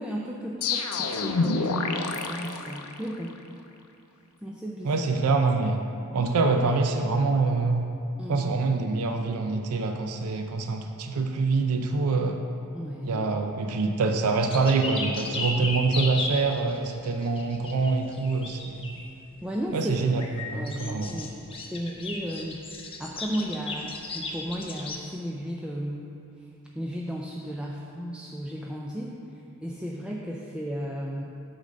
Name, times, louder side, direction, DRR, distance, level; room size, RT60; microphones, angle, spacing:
voice 1, 0.0-2.0 2.3-3.4 4.4-4.9 8.2-8.5 12.7-13.3 19.4-20.0 20.5-21.3 21.7-26.1 26.7-29.2 29.6-31.2, equal, 5° right, -3 dB, 0.4 m, -34 dB
sound 1, 0.6-3.4, left 3 dB, 75° left, 0.6 m, -28 dB
voice 2, 4.8-5.8 6.1-7.9 8.3-12.4 13.0-18.9 19.7-21.2, right 3 dB, 75° right, 5 dB, 0.5 m, -25 dB
sound 2, 14.5-19.1 20.1-25.0, left 2 dB, 25° left, 0.7 m, -35 dB
8.2 x 4.0 x 6.5 m, 2.6 s
head